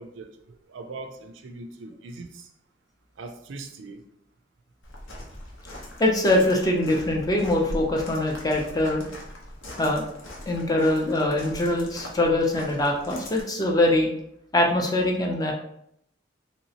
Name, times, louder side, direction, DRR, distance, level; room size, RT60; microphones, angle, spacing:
voice 1, 0.0-2.5 3.2-4.0, right 3 dB, 75° right, 6 dB, 0.4 m, -41 dB
Walk footsteps, 4.8-13.4, left 1 dB, 90° left, 0.8 m, -41 dB
voice 2, 6.0-9.0 9.8-10.0 10.5-14.1 14.5-15.5, left 1 dB, 20° left, 0 dB, 0.5 m, -23 dB
3.1 x 2.9 x 2.8 m, 0.74 s
head